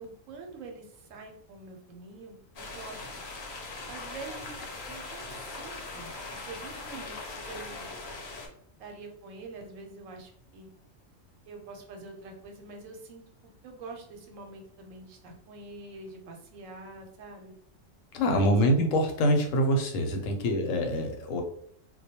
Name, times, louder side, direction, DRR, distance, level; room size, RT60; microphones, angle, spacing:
voice 1, 0.0-3.1 3.9-4.6 4.9-6.1 6.5-7.9 8.8-10.7 11.5-13.2 13.6-17.5 18.2-18.8 20.4-20.6, right 3 dB, 85° right, 3 dB, 1.0 m, -45 dB
sound 1, 2.6-8.5, left 3 dB, 65° left, 0.8 m, -40 dB
voice 2, 18.1-21.4, equal, 85° left, 4 dB, 1.0 m, -25 dB
2.2 x 2.2 x 2.7 m, 0.63 s
omnidirectional pair, 1.3 m